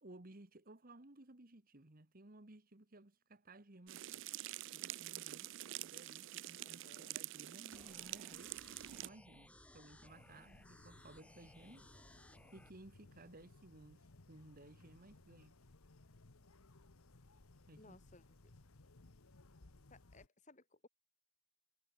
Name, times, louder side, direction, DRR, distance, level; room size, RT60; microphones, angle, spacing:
voice 1, 0.0-4.0 4.7-5.5 5.8-8.5 9.0-11.9 12.5-15.5 17.7-18.0, right 2 dB, 40° right, 1.5 m, -58 dB
sound 1, 3.9-9.1, right 15 dB, 60° right, 0.4 m, -47 dB
voice 2, 6.6-7.2 17.8-18.5 19.9-20.9, left 2 dB, 35° left, 2.6 m, -63 dB
sound 2, 7.7-12.7, left 1 dB, 5° left, 2.9 m, -61 dB
sound 3, 10.0-20.3, left 2 dB, 80° left, 1.4 m, -63 dB
head